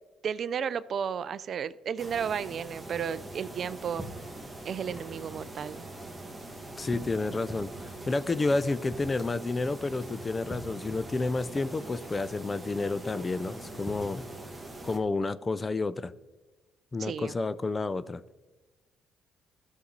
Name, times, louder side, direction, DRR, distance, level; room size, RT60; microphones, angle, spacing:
voice 1, 0.2-4.1 4.6-5.8 17.0-17.3, right 7 dB, 55° right, 16 dB, 0.4 m, -33 dB
sound 1, 2.0-15.0, right 2 dB, 10° right, 1.8 m, -42 dB
voice 2, 6.8-14.3 14.8-16.1 16.9-18.2, left 3 dB, 25° left, 16 dB, 0.5 m, -30 dB
13.5 x 6.4 x 4.0 m, 1.2 s
supercardioid pair, 75°, 0 cm